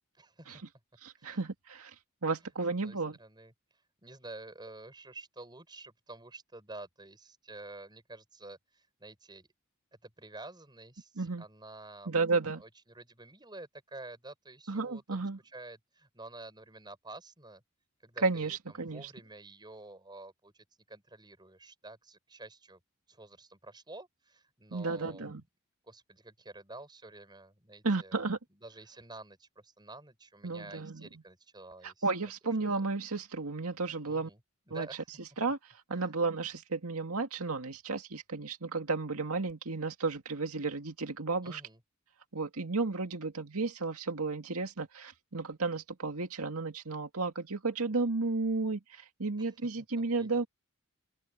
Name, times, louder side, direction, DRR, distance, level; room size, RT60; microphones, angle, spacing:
voice 1, 0.1-0.6 1.1-1.4 2.8-9.5 10.0-12.2 12.6-17.6 18.0-22.8 23.1-25.4 25.8-28.2 28.6-32.3 32.7-32.8 34.1-34.4 34.7-35.1 36.0-36.1 41.4-41.8 49.4-49.5 50.2-50.4, right 2 dB, 20° right, 5.4 m, -50 dB
voice 2, 1.0-2.0 2.2-3.2 11.2-11.4 12.1-12.6 14.7-15.4 18.2-19.1 24.7-25.4 27.8-28.4 30.4-31.1 31.8-34.3 34.7-34.9 35.4-35.6 35.9-41.6 42.3-50.5, right 3 dB, 85° right, 2.1 m, -33 dB
open air
head